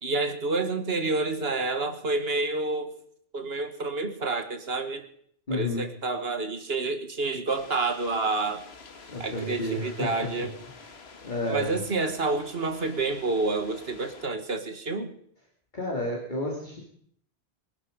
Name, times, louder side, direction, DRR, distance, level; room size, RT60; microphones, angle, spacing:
voice 1, 0.0-2.9 3.3-5.1 5.5-8.6 9.2-10.5 11.5-15.1, right 3 dB, 75° right, 8 dB, 1.9 m, -29 dB
voice 2, 5.5-5.8 9.1-10.5 11.2-11.7 15.7-16.8, left 1 dB, 50° left, -1 dB, 3.0 m, -31 dB
sound 1, 7.5-14.3, left 4 dB, 80° left, 1.7 m, -49 dB
24.5 x 11.0 x 5.3 m, 0.63 s
omnidirectional pair, 1.0 m